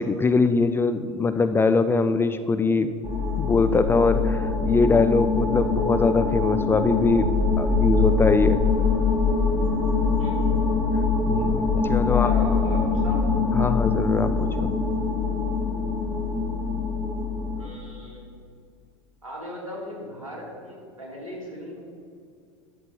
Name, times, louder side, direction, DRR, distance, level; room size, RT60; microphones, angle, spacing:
voice 1, 0.0-2.9 3.4-8.6 11.3-12.3 13.5-14.3 14.6-14.7, left 4 dB, 15° left, 10 dB, 0.4 m, -22 dB
sound 1, 3.0-17.6, left 4 dB, 20° right, 2.5 m, -23 dB
voice 2, 10.2-10.7 12.0-13.2 17.6-18.3 19.2-21.8, equal, 80° right, -3 dB, 2.7 m, -37 dB
11.0 x 6.9 x 4.3 m, 2.3 s
figure-of-eight pair, 85°, 17 cm